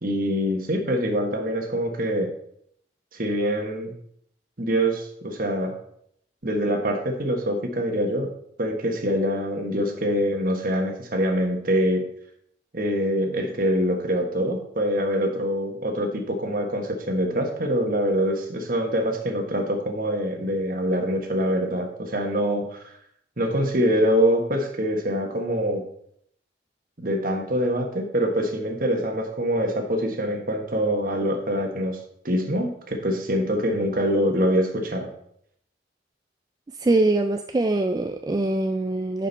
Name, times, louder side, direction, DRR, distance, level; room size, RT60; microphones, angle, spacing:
voice 1, 0.0-2.3 3.1-3.9 4.6-5.7 6.4-8.3 8.6-12.0 12.7-22.9 23.4-25.8 27.0-32.0 32.2-35.1, equal, 50° right, 4 dB, 1.4 m, -24 dB
voice 2, 36.8-39.3, right 2 dB, 20° right, 5 dB, 0.3 m, -23 dB
9.7 x 5.3 x 4.0 m, 0.69 s
head